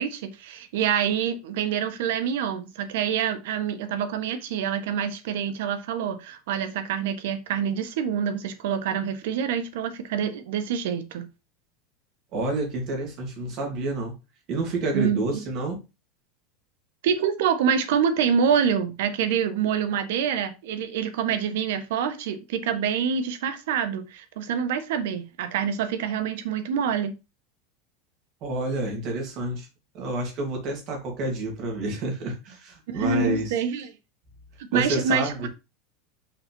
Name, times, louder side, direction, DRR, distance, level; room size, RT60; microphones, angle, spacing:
voice 1, 0.0-11.2 14.9-15.2 17.0-27.1 32.9-33.9 34.6-35.3, right 7 dB, 70° right, 1.3 m, -26 dB
voice 2, 12.3-14.1 14.5-15.8 28.4-29.7 29.9-33.5 34.7-35.5, right 2 dB, 35° right, 2.6 m, -29 dB
5.8 x 4.1 x 5.4 m
supercardioid pair, 175°, 0 cm